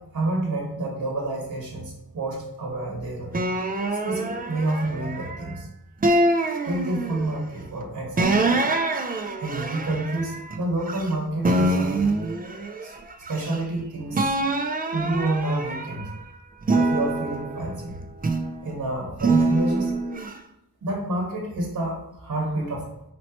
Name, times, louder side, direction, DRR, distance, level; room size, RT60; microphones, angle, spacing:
voice 1, 0.0-3.3 4.0-5.7 6.6-8.6 9.4-12.0 12.8-12.9 13.3-14.3 14.9-16.1 16.7-18.0 18.6-19.9 20.8-22.9, right 2 dB, 60° right, -1 dB, 1.4 m, -29 dB
sound 1, 3.3-5.5 6.0-7.4 8.2-11.1 11.4-13.8 14.1-16.1 16.6-18.6 19.2-20.3, right 2 dB, 25° right, 0.4 m, -25 dB
4.3 x 4.2 x 2.9 m, 0.84 s
wide cardioid pair, 125°, 35 cm